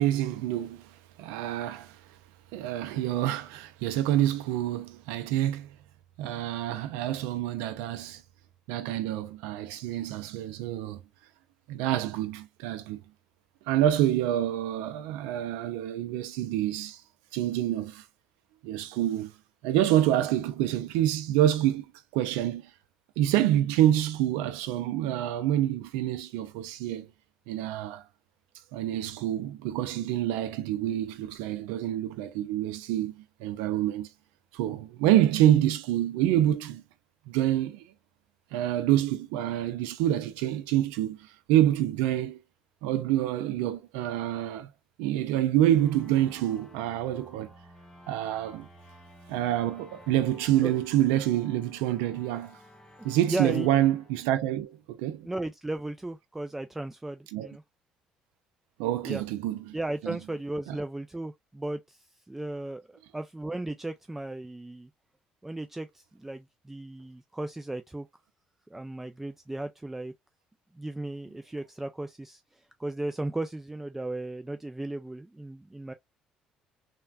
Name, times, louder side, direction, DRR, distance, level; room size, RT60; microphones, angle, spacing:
voice 1, 0.0-2.0 2.5-5.7 6.2-8.2 8.7-11.0 11.7-13.0 13.7-17.0 17.3-18.1 18.6-19.3 19.6-21.8 22.1-22.7 23.2-27.1 27.5-28.0 28.7-34.1 34.5-36.8 37.3-37.9 38.5-42.4 42.8-44.7 45.0-47.5 48.1-48.7 49.3-52.6 53.0-55.3 57.3-57.5 58.8-59.7 60.0-60.2 60.7-60.8, right 12 dB, 90° right, 0.4 m, -27 dB
sound 1, 45.7-55.1, left 1 dB, 20° left, 1.0 m, -53 dB
voice 2, 53.3-53.7 55.2-57.6 59.0-59.2 59.7-64.9 65.4-68.1 68.7-70.1 70.7-75.9, right 2 dB, 10° right, 0.3 m, -36 dB
3.3 x 2.2 x 2.2 m
supercardioid pair, 75°, 3 cm